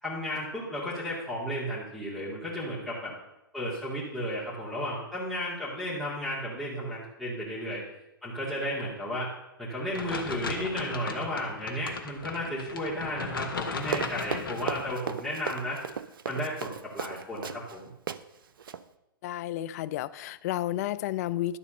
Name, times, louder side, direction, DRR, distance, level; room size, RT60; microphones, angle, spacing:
voice 1, 0.0-3.1 3.5-7.8 8.2-9.3 9.6-15.8 16.3-17.9, equal, ahead, -11 dB, 2.6 m, -33 dB
sound 1, 9.9-14.9, left 5 dB, 70° left, 1.3 m, -36 dB
Run, 13.8-17.8 18.1-18.2 18.6-18.8, right 7 dB, 70° right, 0.5 m, -35 dB
voice 2, 19.2-21.6, left 13 dB, 45° left, 15 dB, 0.4 m, -31 dB
12.0 x 4.2 x 6.6 m, 0.92 s
figure-of-eight pair, 115°, 12 cm